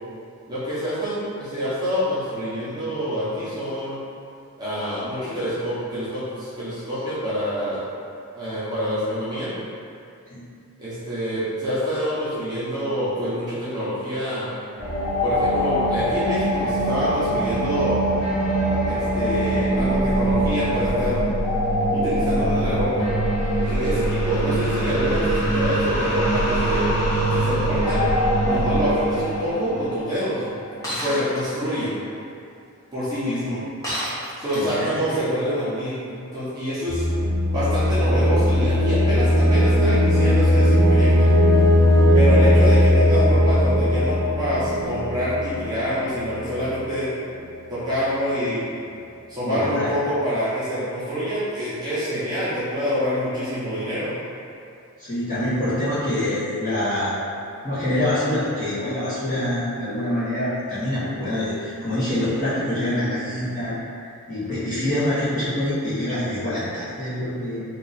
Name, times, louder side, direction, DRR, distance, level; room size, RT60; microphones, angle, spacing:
voice 1, 0.5-4.0 4.6-7.8 8.3-9.5 10.8-14.5 15.2-18.0 18.8-21.2 21.9-23.1 23.6-26.9 27.3-28.1 28.4-30.4 30.9-31.9 32.9-33.6 34.4-37.0 37.5-41.3 42.1-47.1 47.7-48.6 49.3-54.1, equal, 20° right, -12 dB, 0.8 m, -26 dB
sound 1, 14.8-31.0, right 1 dB, 80° left, 1.0 m, -23 dB
Shatter, 30.8-31.4 33.8-34.9, equal, 15° left, 0.8 m, -29 dB
voice 2, 34.5-35.2 49.4-49.9 55.0-57.2 57.6-63.7 64.3-67.6, left 1 dB, 35° left, -12 dB, 1.1 m, -25 dB
sound 2, 36.9-46.7, left 1 dB, 50° right, 0.6 m, -18 dB
2.9 x 2.5 x 4.0 m, 2.5 s
head